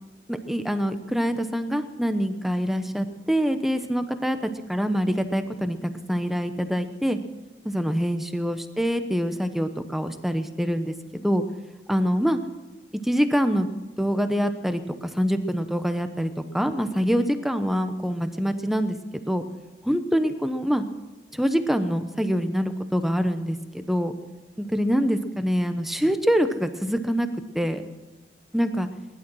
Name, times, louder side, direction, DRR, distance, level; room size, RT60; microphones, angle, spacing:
voice 1, 0.3-5.8 6.1-7.2 7.6-11.4 11.9-12.4 13.0-13.7 14.0-19.0 19.3-19.4 19.8-20.9 21.3-24.1 24.6-27.3 27.5-27.8 28.5-28.9, equal, ahead, 8 dB, 0.9 m, -25 dB
19.5 x 11.5 x 6.2 m, 1.1 s
head